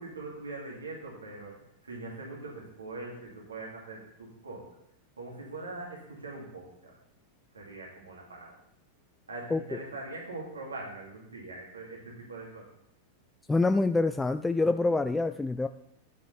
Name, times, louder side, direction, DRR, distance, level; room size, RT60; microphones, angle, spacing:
voice 1, 0.0-1.5 1.8-4.7 5.2-6.7 7.5-8.5 9.3-12.6, right 2 dB, 75° right, -2 dB, 2.6 m, -42 dB
voice 2, 9.5-9.8 13.5-15.7, left 3 dB, 10° left, 9 dB, 0.3 m, -26 dB
12.0 x 7.9 x 3.4 m, 0.78 s
figure-of-eight pair, 90°, 0 cm